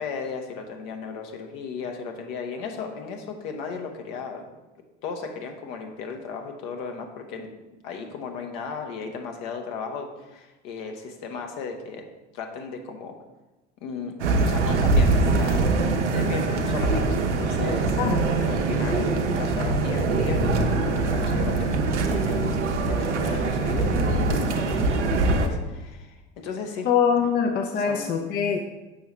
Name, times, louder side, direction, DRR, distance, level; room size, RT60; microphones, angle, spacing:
voice 1, 0.0-4.4 5.0-7.5 7.8-12.1 12.3-13.1 13.8-15.6 16.1-22.6 22.9-26.9 27.2-27.3 27.9-28.1, left 5 dB, 55° left, 4 dB, 1.0 m, -35 dB
sound 1, 14.2-25.5, right 3 dB, 80° right, 0.7 m, -23 dB
voice 2, 26.8-28.7, left 6 dB, 30° left, 5 dB, 0.6 m, -23 dB
6.8 x 5.5 x 3.1 m, 1.1 s
figure-of-eight pair, 70°, 35 cm